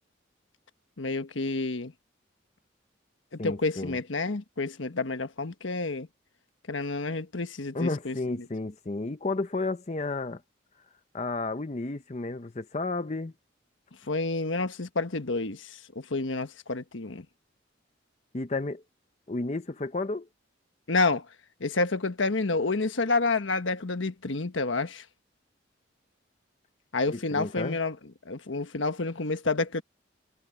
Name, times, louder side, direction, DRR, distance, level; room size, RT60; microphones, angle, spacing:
voice 1, 1.0-1.9 3.3-6.1 6.7-8.5 14.1-17.2 20.9-21.2 21.6-25.0 26.9-28.0 28.2-29.8, left 3 dB, 85° left, 1.3 m, -29 dB
voice 2, 3.4-4.0 7.7-10.4 11.1-13.3 18.3-18.8 19.3-20.3 27.1-27.8, left 3 dB, 35° left, 0.7 m, -32 dB
head